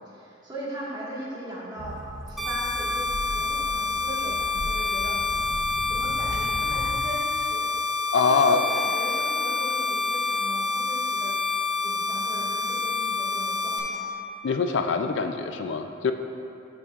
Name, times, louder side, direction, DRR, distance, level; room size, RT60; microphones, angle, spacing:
voice 1, 0.0-3.1 3.3-5.2 5.9-7.7 8.2-11.4 11.8-14.0, equal, 25° right, -7 dB, 1.6 m, -38 dB
sound 1, 1.8-6.9, right 1 dB, 75° right, 0.8 m, -37 dB
sound 2, 2.4-13.8, left 3 dB, ahead, 1.5 m, -27 dB
voice 2, 8.1-8.6 14.4-16.1, left 5 dB, 70° left, 7 dB, 0.4 m, -23 dB
12.0 x 6.4 x 2.4 m, 2.7 s
head